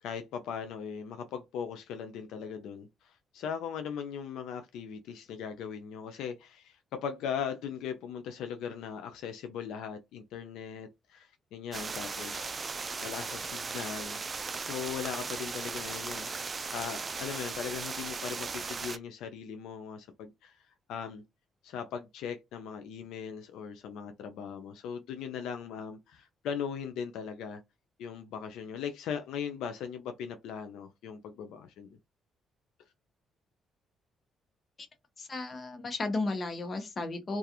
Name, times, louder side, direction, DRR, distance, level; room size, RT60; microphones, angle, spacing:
voice 1, 0.0-12.6 13.0-14.2 14.6-20.6 20.9-21.2 21.6-27.6 28.0-32.0, left 7 dB, 90° left, 0.4 m, -39 dB
sound 1, 11.7-19.0, right 4 dB, 35° right, 0.3 m, -37 dB
voice 2, 35.2-37.4, left 2 dB, 40° left, 0.8 m, -34 dB
2.3 x 2.3 x 2.8 m
cardioid pair, 90°, 0 cm